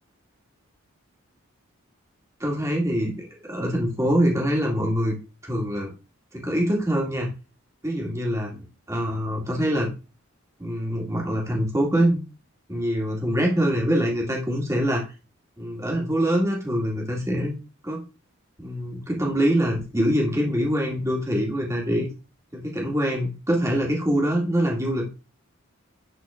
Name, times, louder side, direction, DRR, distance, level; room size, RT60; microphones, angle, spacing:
voice 1, 2.4-3.1 3.5-5.1 5.4-5.9 6.3-7.3 7.8-9.9 10.6-12.2 12.7-15.0 15.6-17.5 17.8-18.0 18.6-22.1 22.5-25.1, equal, 15° right, -1 dB, 2.1 m, -24 dB
11.0 x 4.3 x 3.6 m, 0.31 s
head